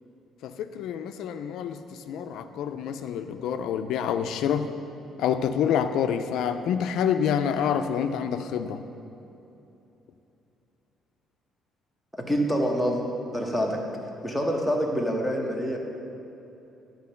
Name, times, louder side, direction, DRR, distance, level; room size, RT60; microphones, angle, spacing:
voice 1, 0.4-4.7 5.2-8.8, left 8 dB, 75° left, 8 dB, 0.3 m, -27 dB
voice 2, 12.1-13.0 13.3-13.8 14.2-15.8, equal, 5° right, 0 dB, 0.9 m, -26 dB
10.5 x 3.8 x 5.6 m, 2.9 s
cardioid pair, 140°, 0 cm